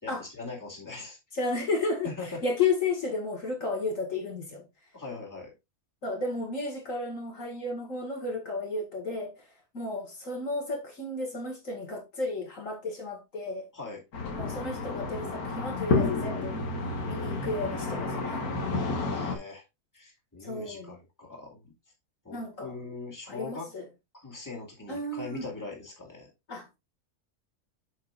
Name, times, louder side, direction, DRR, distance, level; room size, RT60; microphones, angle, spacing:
voice 1, 0.0-1.2 2.0-2.4 4.9-5.5 13.7-14.0 18.7-19.6 19.9-21.7 22.2-23.7 24.1-26.3, left 3 dB, 10° left, 2.3 m, -41 dB
voice 2, 1.4-2.1 2.4-4.7 6.0-9.3 9.7-13.7 14.4-16.6 17.1-18.5 20.4-20.9 22.3-22.7 23.3-23.8 24.9-25.5 26.5-26.8, left 3 dB, 65° left, 2.3 m, -33 dB
sound 1, 14.1-19.4, left 3 dB, 85° left, 2.0 m, -30 dB
7.4 x 7.3 x 2.5 m
omnidirectional pair, 1.5 m